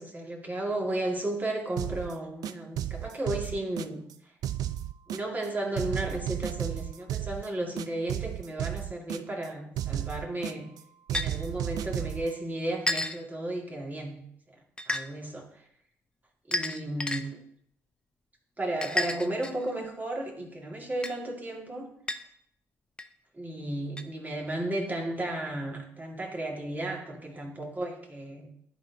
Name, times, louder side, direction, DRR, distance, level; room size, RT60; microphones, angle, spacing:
voice 1, 0.0-4.3 5.1-10.7 11.1-14.2 14.5-15.7 16.5-17.4 18.6-21.9 23.3-28.5, right 1 dB, 25° right, 0 dB, 2.0 m, -34 dB
sound 1, 1.8-2.1 2.4-4.1 4.4-5.5 5.8-7.5 7.8-9.5 9.8-10.8 11.1-12.3, right 12 dB, 65° right, 0.3 m, -34 dB
sound 2, 11.1-11.3 12.9-13.2 14.8-15.0 16.5-17.2 18.8-19.7 21.0-21.1 22.1-22.2 23.0-23.1 24.0-24.1, left 1 dB, 15° left, 0.6 m, -30 dB
11.5 x 4.2 x 2.8 m, 0.71 s
supercardioid pair, 55°, 7 cm